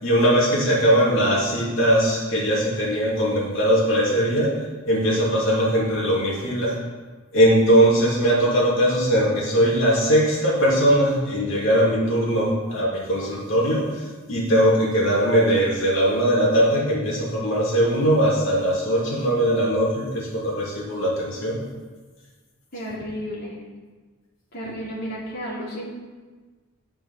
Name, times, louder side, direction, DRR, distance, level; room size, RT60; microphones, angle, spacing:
voice 1, 0.0-6.8 7.3-21.6, equal, 70° left, -5 dB, 2.9 m, -20 dB
voice 2, 22.7-23.6 24.5-25.9, equal, 50° left, -6 dB, 3.5 m, -32 dB
11.0 x 5.6 x 5.8 m, 1.4 s
head